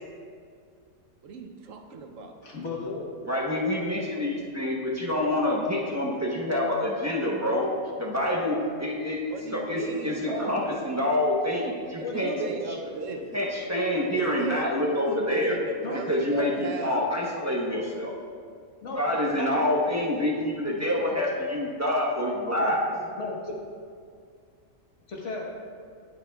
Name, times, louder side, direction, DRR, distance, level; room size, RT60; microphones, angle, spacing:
voice 1, 1.2-2.3 9.3-10.5 12.1-13.2 14.1-14.7 14.9-17.2, right 3 dB, 75° right, 4 dB, 1.1 m, -36 dB
voice 2, 2.4-3.1 10.2-10.6 12.0-12.5 15.8-16.0 16.3-16.5 18.8-20.3 20.9-21.2 22.6-23.6 25.1-25.4, left 3 dB, 60° left, -2 dB, 1.6 m, -35 dB
voice 3, 3.3-7.6 8.0-12.3 13.3-15.6 16.1-18.2 18.9-22.8, left 1 dB, 15° right, -3 dB, 0.9 m, -27 dB
18.0 x 6.1 x 2.3 m, 2.2 s
omnidirectional pair, 1.4 m